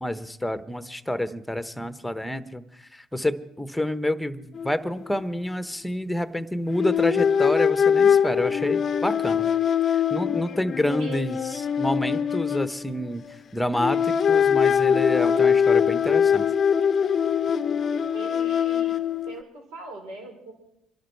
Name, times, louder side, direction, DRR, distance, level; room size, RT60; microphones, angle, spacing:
voice 1, 0.0-2.6 2.9-9.5 9.9-13.2 13.5-16.4, left 1 dB, 5° left, 12 dB, 1.0 m, -28 dB
sound 1, 4.5-4.7 5.0-5.2 6.7-13.4 13.8-19.4, left 7 dB, 45° left, 0.6 m, -22 dB
voice 2, 18.1-19.0 19.3-20.5, right 3 dB, 80° right, 1 dB, 5.0 m, -41 dB
26.0 x 11.5 x 4.6 m, 0.86 s
supercardioid pair, 75°, 0 cm